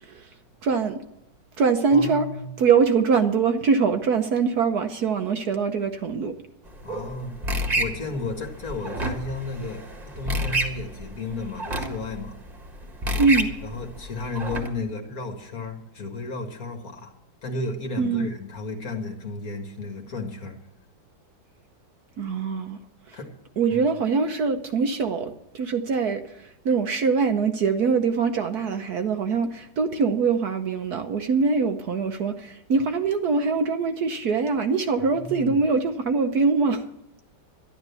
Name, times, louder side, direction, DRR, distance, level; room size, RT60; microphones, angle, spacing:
voice 1, 0.6-1.0 1.6-2.3 2.6-6.4 13.2-13.5 18.0-18.3 22.2-22.8 23.1-23.2 23.6-36.9, right 5 dB, 60° right, 7 dB, 1.2 m, -23 dB
voice 2, 1.9-2.5 6.8-7.4 7.8-12.4 13.6-17.1 17.4-20.6 23.1-23.3 23.7-23.8 35.1-35.5, left 3 dB, 45° left, 4 dB, 2.0 m, -33 dB
sound 1, 6.6-14.7, right 1 dB, 20° right, 1.5 m, -30 dB
12.0 x 11.5 x 6.9 m, 0.81 s
omnidirectional pair, 2.1 m